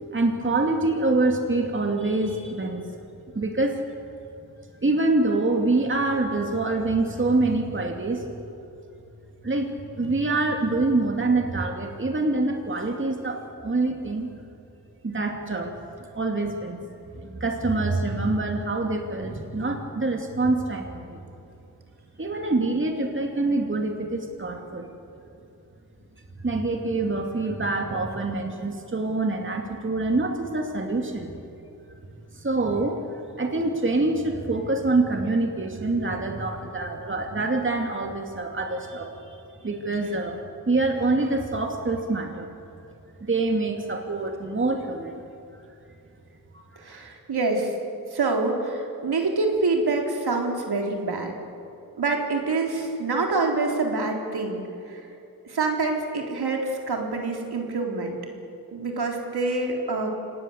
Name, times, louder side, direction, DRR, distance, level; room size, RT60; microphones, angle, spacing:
voice 1, 0.1-2.9 3.3-3.8 4.8-8.3 9.4-9.7 10.0-14.3 15.0-15.7 16.1-16.8 17.2-21.2 22.2-24.9 26.4-31.3 32.4-33.0 33.4-39.4 39.6-40.4 40.7-42.5 43.2-45.2 46.5-46.6, right 2 dB, 30° right, 3 dB, 2.6 m, -25 dB
voice 2, 46.8-47.7 48.1-51.3 52.0-54.6 54.9-55.0 55.4-58.2 58.7-60.1, right 3 dB, 75° right, 1 dB, 4.0 m, -26 dB
27.0 x 19.0 x 8.1 m, 2.7 s
wide cardioid pair, 95°, 39 cm